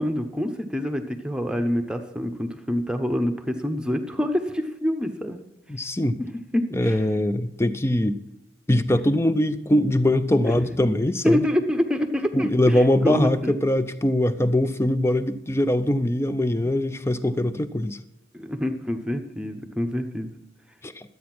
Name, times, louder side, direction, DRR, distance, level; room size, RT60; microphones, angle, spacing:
voice 1, 0.0-5.4 6.5-7.0 10.5-10.7 11.2-13.5 18.3-20.3, equal, 5° right, 6 dB, 0.8 m, -26 dB
voice 2, 5.7-6.2 6.7-8.2 8.7-11.4 12.3-18.0 20.8-21.0, left 1 dB, 15° left, 12 dB, 0.4 m, -22 dB
12.0 x 8.4 x 6.0 m, 0.86 s
head